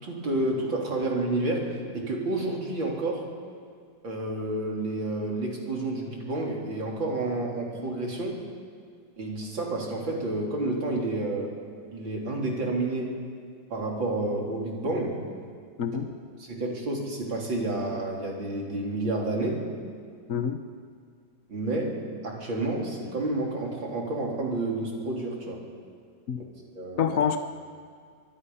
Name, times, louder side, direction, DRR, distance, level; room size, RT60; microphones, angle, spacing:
voice 1, 0.0-3.3 4.0-8.4 9.2-11.5 11.9-13.2 13.7-15.2 16.4-19.7 21.5-25.6 26.4-26.5 26.7-27.1, right 2 dB, 75° right, -1 dB, 4.3 m, -30 dB
voice 2, 27.0-27.4, left 8 dB, 50° left, 7 dB, 1.2 m, -26 dB
25.0 x 21.5 x 5.7 m, 2.1 s
omnidirectional pair, 2.1 m